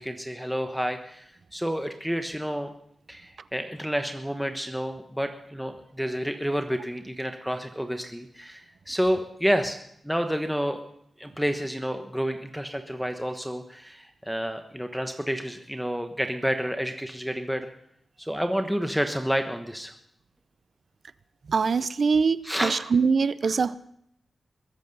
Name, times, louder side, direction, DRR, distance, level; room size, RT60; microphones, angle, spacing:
voice 1, 0.0-2.7 3.1-9.8 10.0-10.8 11.2-17.7 18.2-19.9 22.4-22.8 23.4-23.7, equal, ahead, 6 dB, 1.2 m, -29 dB
voice 2, 21.5-23.8, right 5 dB, 65° right, 17 dB, 0.6 m, -23 dB
21.5 x 8.2 x 5.5 m, 0.73 s
cardioid pair, 55°, 0 cm